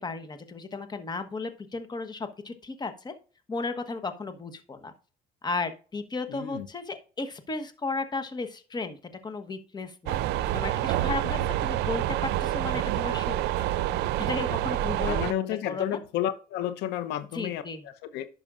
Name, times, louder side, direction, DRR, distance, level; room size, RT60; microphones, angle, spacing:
voice 1, 0.0-3.1 3.5-4.9 5.4-9.0 9.2-13.7 14.2-16.0 17.3-17.8, left 3 dB, 25° left, 10 dB, 1.1 m, -35 dB
voice 2, 6.3-6.7 11.2-11.5 15.0-18.3, left 11 dB, 85° left, 13 dB, 0.7 m, -32 dB
sound 1, 10.1-15.3, right 13 dB, 80° right, 0.5 m, -27 dB
11.0 x 5.9 x 2.5 m, 0.36 s
cardioid pair, 110°, 17 cm